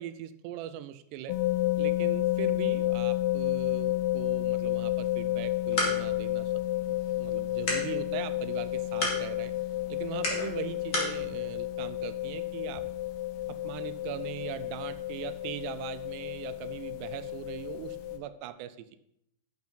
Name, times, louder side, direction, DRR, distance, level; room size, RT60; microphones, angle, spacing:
voice 1, 0.0-1.4 1.8-9.5 9.9-12.8 13.5-19.0, right 12 dB, 85° right, 11 dB, 2.7 m, -40 dB
sound 1, 1.3-18.2, left 15 dB, 85° left, 2.8 m, -31 dB
sound 2, 5.3-11.2, left 1 dB, 35° left, 1.6 m, -36 dB
10.5 x 7.1 x 4.0 m, 0.76 s
omnidirectional pair, 4.8 m